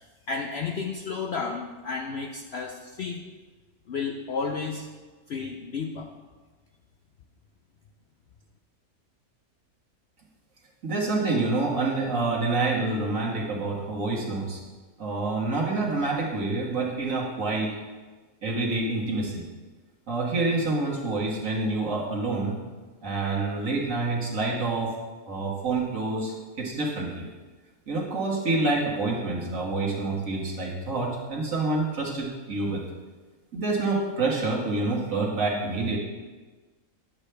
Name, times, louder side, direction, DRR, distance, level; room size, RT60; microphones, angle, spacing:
voice 1, 0.3-3.2 3.9-4.9 5.3-6.1, left 5 dB, 65° left, 2 dB, 0.7 m, -32 dB
voice 2, 10.8-14.6 15.0-17.7 18.4-19.4 20.1-22.6 23.0-24.9 25.3-27.3 27.9-32.8 33.5-36.0, right 3 dB, 55° right, -2 dB, 2.0 m, -27 dB
10.5 x 8.1 x 3.4 m, 1.3 s
omnidirectional pair, 1.6 m